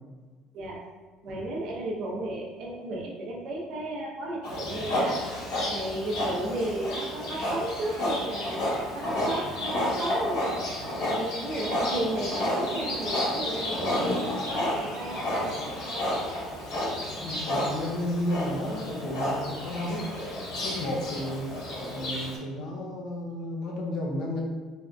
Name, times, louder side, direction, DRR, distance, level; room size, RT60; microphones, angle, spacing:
voice 1, 1.2-5.2 5.7-10.6 11.1-16.1, right 1 dB, 60° right, -2 dB, 0.6 m, -34 dB
Livestock farm animals working animals, 4.4-22.4, left 1 dB, 85° left, 1.1 m, -31 dB
voice 2, 17.2-20.1 20.6-21.5 21.9-24.4, left 1 dB, 60° left, -1 dB, 0.6 m, -32 dB
3.4 x 2.5 x 2.2 m, 1.4 s
cardioid pair, 135°, 0 cm